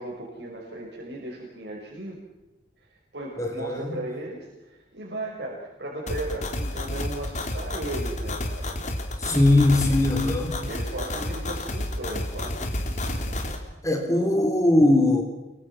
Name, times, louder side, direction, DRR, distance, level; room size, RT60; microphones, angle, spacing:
voice 1, 0.0-2.2 3.1-8.7 10.7-13.4, right 1 dB, 90° right, -3 dB, 5.9 m, -36 dB
voice 2, 3.4-3.9 9.2-10.6 13.8-15.2, left 1 dB, 20° left, 3 dB, 3.4 m, -20 dB
sound 1, 6.1-13.6, left 1 dB, 45° left, 3.4 m, -30 dB
28.5 x 23.5 x 6.1 m, 1.0 s
head